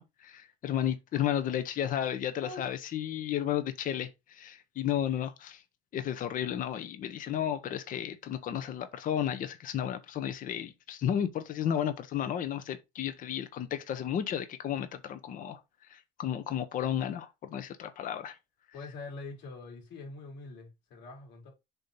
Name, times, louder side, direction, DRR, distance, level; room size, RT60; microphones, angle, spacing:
voice 1, 0.0-5.6 5.9-15.6 15.9-18.4, left 10 dB, 40° left, 0.8 m, -33 dB
voice 2, 2.0-2.7 18.7-21.5, left 3 dB, 60° left, 3.8 m, -44 dB
7.0 x 2.9 x 5.4 m
cardioid pair, 120°, 21 cm